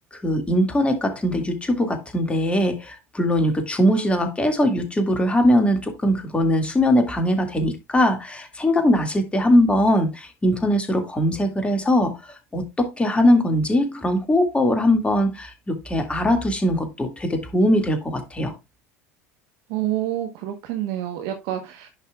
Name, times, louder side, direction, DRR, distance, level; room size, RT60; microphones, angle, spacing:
voice 1, 0.1-12.2 12.5-18.5, left 1 dB, 15° left, 2.2 m, -21 dB
voice 2, 19.7-21.9, right 12 dB, 60° right, 1.2 m, -28 dB
10.5 x 5.6 x 2.4 m
hypercardioid pair, 75°, 8 cm